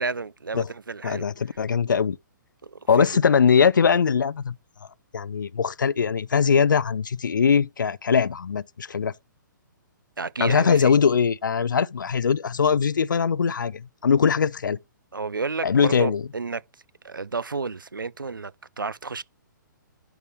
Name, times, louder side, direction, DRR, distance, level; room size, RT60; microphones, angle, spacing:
voice 1, 0.0-1.3 2.6-3.1 10.2-11.0 15.1-16.6 17.0-19.2, right 4 dB, 80° right, 0.5 m, -31 dB
voice 2, 1.0-2.2 2.9-4.6 5.1-9.1 10.4-14.8 15.6-16.2, left 6 dB, 70° left, 0.4 m, -21 dB
11.0 x 4.5 x 3.4 m
figure-of-eight pair, 125°, 11 cm